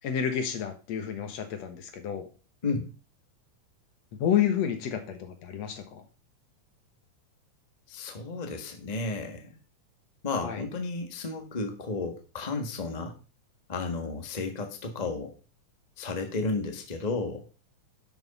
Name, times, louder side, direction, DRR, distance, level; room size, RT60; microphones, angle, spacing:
voice 1, 0.0-2.3 4.2-6.0 10.4-10.6, left 9 dB, 65° left, 7 dB, 2.4 m, -30 dB
voice 2, 7.9-9.6 10.2-13.1 13.7-15.3 16.0-17.4, left 3 dB, 35° left, 4 dB, 0.6 m, -33 dB
11.5 x 6.2 x 4.1 m, 0.34 s
omnidirectional pair, 3.3 m